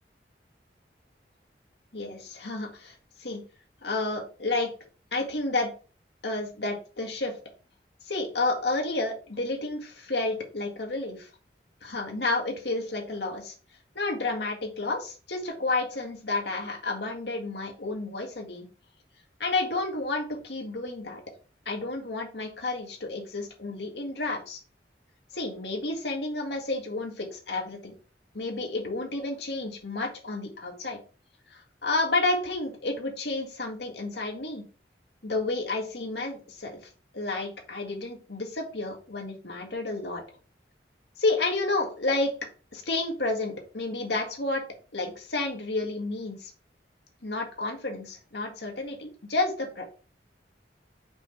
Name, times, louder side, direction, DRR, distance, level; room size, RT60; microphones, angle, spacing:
voice 1, 1.9-3.4 3.8-4.7 5.1-5.7 6.2-7.3 8.1-11.3 11.8-13.5 14.0-18.7 19.4-21.2 21.7-24.6 25.3-27.9 28.3-31.0 31.5-34.6 35.2-36.8 37.1-40.2 41.2-42.3 42.7-44.6 44.9-46.5 47.2-49.8, left 2 dB, 75° left, 2 dB, 1.9 m, -30 dB
6.2 x 5.2 x 3.4 m, 0.36 s
head